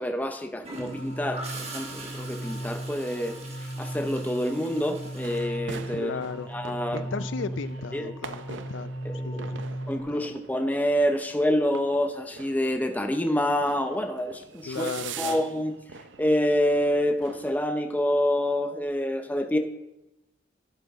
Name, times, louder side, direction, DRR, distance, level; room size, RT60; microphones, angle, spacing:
voice 1, 0.0-3.3 3.8-6.1 6.5-7.1 7.9-8.0 9.0-9.4 9.9-14.9 15.2-15.7 16.2-19.6, equal, 10° left, 6 dB, 0.7 m, -27 dB
Gurgling / Toilet flush, 0.6-6.4 8.4-8.6, right 2 dB, 35° right, 1.8 m, -43 dB
sound 1, 0.8-10.0, right 1 dB, 45° left, 2.1 m, -37 dB
sound 2, 5.2-17.6, right 6 dB, 80° right, 0.6 m, -44 dB
voice 2, 5.9-6.5 6.9-8.9 9.2-9.7 10.1-10.3 14.7-15.4, left 5 dB, 80° left, 14 dB, 0.4 m, -35 dB
11.5 x 8.2 x 3.6 m, 0.93 s
head